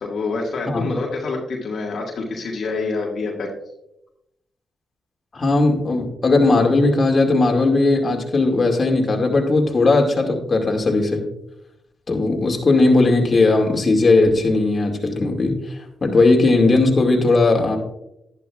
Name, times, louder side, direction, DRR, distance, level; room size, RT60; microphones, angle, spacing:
voice 1, 0.0-3.5, left 3 dB, 65° left, -2 dB, 1.8 m, -26 dB
voice 2, 5.3-11.2 12.1-17.8, left 2 dB, 45° left, 1 dB, 2.3 m, -17 dB
11.5 x 11.0 x 2.4 m, 0.85 s
supercardioid pair, 50°, 0 cm